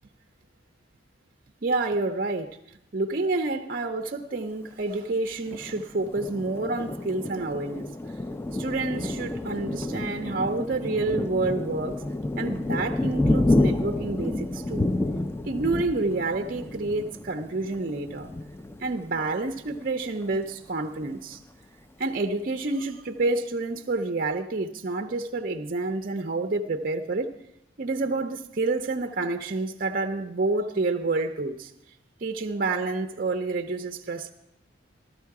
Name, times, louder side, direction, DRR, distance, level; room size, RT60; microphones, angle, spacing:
voice 1, 1.6-2.5 2.9-7.9 8.5-12.0 12.4-14.8 15.5-18.3 18.8-21.4 22.0-27.3 27.8-31.7 32.2-34.3, right 3 dB, 45° right, 0.5 m, -28 dB
Thunder, 5.5-19.8 20.3-20.4 20.7-21.4, left 1 dB, 10° left, 0.4 m, -29 dB
14.0 x 13.0 x 4.7 m
head